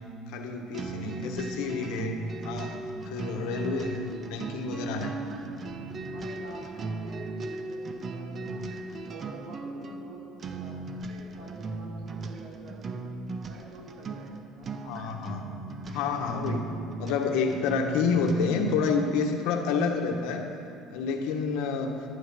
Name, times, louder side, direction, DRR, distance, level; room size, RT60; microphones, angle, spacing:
voice 1, 0.3-5.1 14.8-15.4 15.9-16.7 17.0-20.4 20.9-22.0, left 5 dB, 80° left, 3 dB, 1.4 m, -29 dB
sound 1, 0.7-19.3, right 3 dB, 35° right, 0.7 m, -37 dB
voice 2, 3.2-4.0 6.0-8.7 9.0-13.0 13.4-14.8, right 2 dB, 70° right, -3 dB, 3.3 m, -47 dB
11.5 x 11.0 x 5.6 m, 2.6 s
cardioid pair, 125°, 0 cm